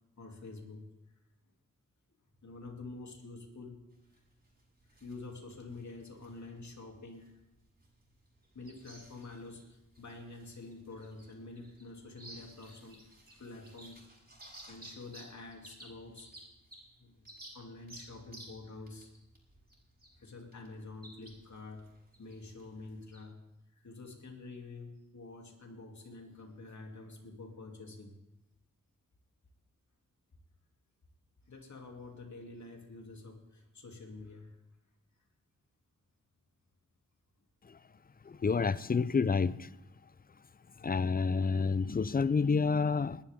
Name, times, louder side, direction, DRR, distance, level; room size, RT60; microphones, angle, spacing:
voice 1, 0.2-0.9 2.4-3.8 4.9-7.4 8.5-14.1 14.7-16.3 17.0-17.3 17.5-19.1 20.2-21.9 22.2-23.4 23.7-28.2 31.4-34.5, left 3 dB, 60° left, 2.9 m, -48 dB
sound 1, 3.9-23.2, right 1 dB, 25° right, 7.0 m, -56 dB
voice 2, 38.3-39.7 40.8-43.2, left 5 dB, 25° left, 0.5 m, -29 dB
20.5 x 11.5 x 3.7 m
cardioid pair, 55°, 33 cm